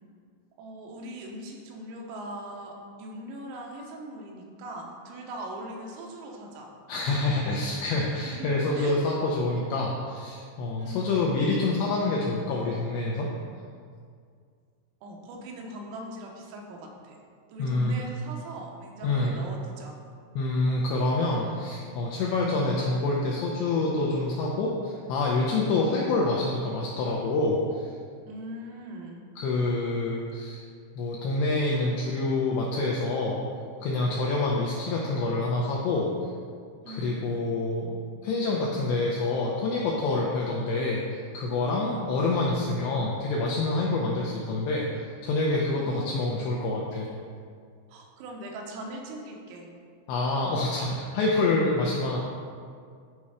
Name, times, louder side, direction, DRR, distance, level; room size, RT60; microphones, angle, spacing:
voice 1, 0.6-6.7 8.2-9.2 10.8-11.2 15.0-17.2 17.5-20.0 28.3-29.2 36.9-37.2 41.8-42.2 45.8-46.5 47.9-49.7, right 1 dB, 85° right, 0 dB, 3.7 m, -40 dB
voice 2, 6.9-13.3 17.6-18.1 19.0-19.4 20.4-27.9 29.4-30.6 31.0-33.4 33.8-36.1 36.9-47.1 50.1-52.2, left 2 dB, 85° left, -3 dB, 2.4 m, -27 dB
11.5 x 4.2 x 4.9 m, 2.2 s
omnidirectional pair, 5.8 m